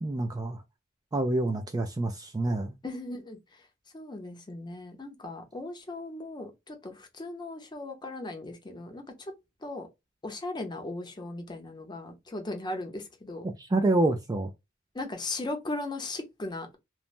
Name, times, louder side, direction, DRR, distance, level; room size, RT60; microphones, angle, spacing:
voice 1, 0.0-0.6 1.1-2.8 13.4-14.5, right 2 dB, 20° right, 0.3 m, -27 dB
voice 2, 2.8-3.4 3.9-9.3 9.6-9.9 10.2-13.5 14.9-16.8, left 2 dB, 20° left, 0.6 m, -37 dB
3.1 x 2.1 x 2.5 m
head